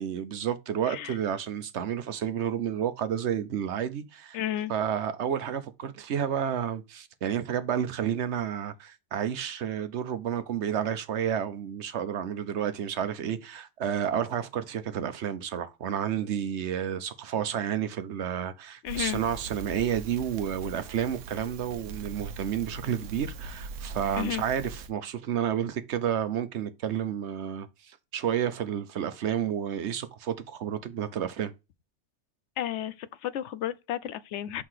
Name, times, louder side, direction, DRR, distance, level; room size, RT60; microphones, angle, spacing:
voice 1, 0.0-4.4 4.7-31.5, right 9 dB, 70° right, 1.1 m, -31 dB
voice 2, 0.9-1.2 4.3-4.7 18.8-19.2 24.2-24.4 32.6-34.6, left 12 dB, 75° left, 0.9 m, -32 dB
Crackle, 18.9-24.9, right 3 dB, 90° right, 1.1 m, -41 dB
5.8 x 3.7 x 4.7 m
omnidirectional pair, 1.2 m